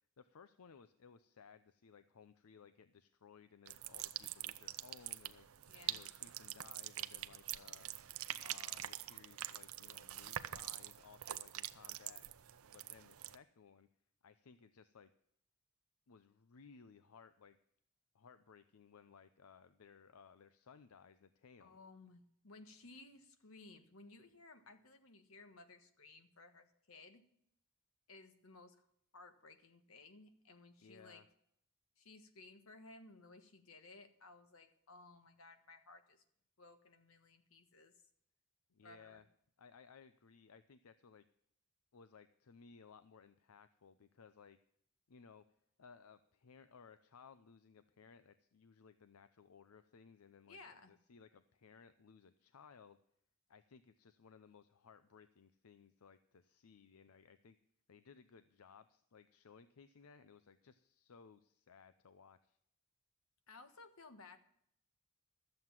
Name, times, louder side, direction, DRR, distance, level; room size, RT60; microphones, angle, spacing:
voice 1, 0.2-7.9 8.4-12.2 12.6-13.9 14.2-15.1 16.1-17.6 18.1-21.8 30.8-31.3 38.7-39.3 39.6-41.2 41.9-44.6 45.1-45.4 45.8-53.0 53.5-57.6 57.9-62.6, left 6 dB, 85° left, 12 dB, 0.6 m, -61 dB
sound 1, 3.7-13.4, right 13 dB, 75° right, 0.6 m, -45 dB
voice 2, 5.7-6.0 21.6-27.3 28.1-28.9 29.1-31.2 32.0-36.2 36.6-38.0 38.8-39.2 50.5-50.9 63.5-64.4, left 3 dB, 70° left, 8 dB, 1.4 m, -58 dB
13.0 x 7.8 x 7.4 m, 0.69 s
head